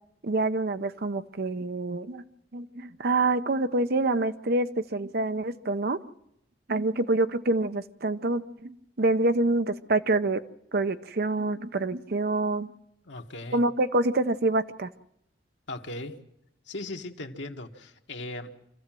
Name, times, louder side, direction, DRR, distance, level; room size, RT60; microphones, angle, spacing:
voice 1, 0.2-2.2 2.5-6.0 6.7-10.4 10.7-12.7 13.5-14.9, right 2 dB, 55° right, 11 dB, 0.7 m, -26 dB
voice 2, 13.0-13.6 15.7-16.2 16.7-18.6, left 2 dB, 75° left, 3 dB, 1.7 m, -38 dB
26.0 x 15.5 x 7.6 m, 0.79 s
head